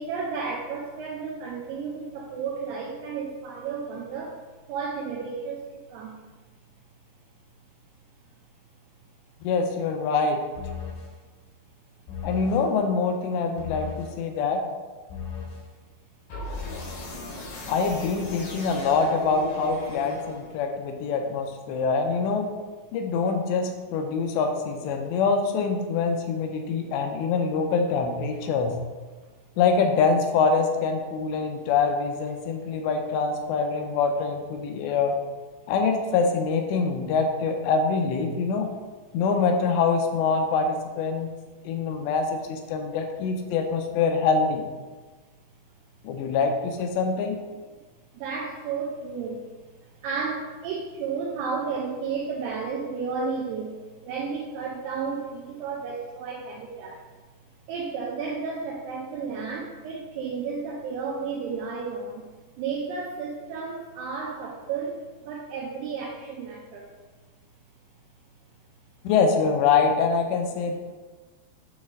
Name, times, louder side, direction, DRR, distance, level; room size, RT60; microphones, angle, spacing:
voice 1, 0.0-4.4 4.7-6.2 48.1-49.5 49.8-57.1 57.7-62.3 62.6-66.9, right 5 dB, 80° right, -2 dB, 2.5 m, -32 dB
voice 2, 9.4-10.4 12.2-14.6 17.7-22.5 22.9-28.7 29.6-35.2 35.7-38.7 39.1-41.3 41.6-44.6 46.0-47.4 69.0-70.8, left 5 dB, 85° left, 4 dB, 2.8 m, -24 dB
sound 1, 10.6-11.1 12.1-12.6 13.6-14.1 15.1-15.6 16.3-20.7, left 3 dB, 70° left, 1.9 m, -36 dB
8.1 x 3.2 x 3.7 m, 1.3 s
omnidirectional pair, 5.0 m